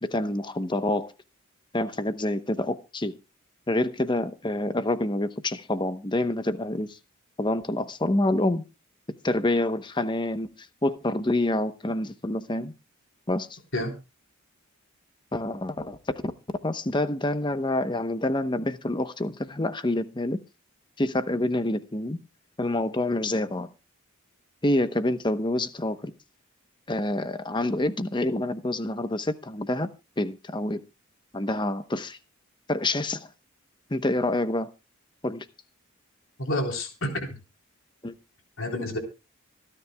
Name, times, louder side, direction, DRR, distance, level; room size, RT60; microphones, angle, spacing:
voice 1, 0.0-1.1 1.7-3.1 3.7-7.0 7.4-8.6 9.2-10.5 10.8-12.7 13.3-13.6 15.3-16.0 16.6-20.4 21.0-22.2 22.6-23.7 24.6-26.1 26.9-29.9 30.2-30.8 31.3-32.2 32.7-33.3 33.9-34.7 35.2-35.5 38.0-38.1, left 1 dB, 20° left, 0.8 m, -27 dB
voice 2, 36.4-37.4 38.6-39.0, left 1 dB, 65° left, 3.8 m, -29 dB
25.5 x 10.0 x 2.3 m
head